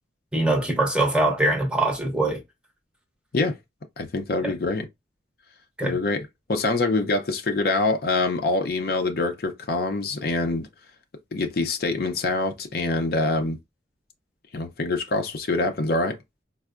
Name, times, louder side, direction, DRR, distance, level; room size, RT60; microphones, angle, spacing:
voice 1, 0.3-2.4 4.4-4.5 5.8-6.0, right 2 dB, 5° right, 0.6 m, -23 dB
voice 2, 4.0-4.9 5.8-10.7 11.3-13.6 14.5-16.2, left 3 dB, 55° left, 0.5 m, -25 dB
4.3 x 2.0 x 2.3 m
head